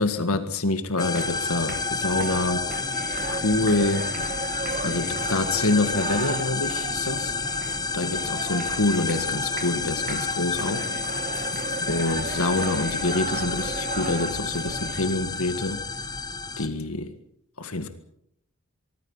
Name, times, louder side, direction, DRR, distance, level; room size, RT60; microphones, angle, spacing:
voice 1, 0.0-2.7 3.3-4.3 4.8-7.4 7.9-10.9 11.8-16.0 16.6-17.1 17.6-17.9, left 2 dB, 75° left, 9 dB, 1.9 m, -26 dB
sound 1, 1.0-16.7, left 4 dB, 20° left, 1.2 m, -30 dB
sound 2, 1.0-15.0, right 5 dB, 40° right, 1.1 m, -36 dB
24.5 x 24.0 x 5.6 m, 0.70 s
head